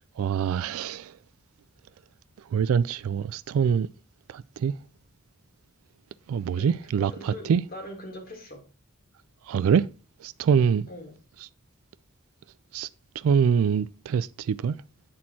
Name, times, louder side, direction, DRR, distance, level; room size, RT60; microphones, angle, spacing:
voice 1, 0.2-1.1 2.5-3.9 4.3-4.7 6.3-7.6 9.5-9.9 10.2-10.9 12.7-12.9 13.2-14.8, right 7 dB, 90° right, 0.3 m, -24 dB
voice 2, 6.5-8.6 10.9-11.2, left 1 dB, 45° left, 2.1 m, -42 dB
8.6 x 4.3 x 4.4 m
head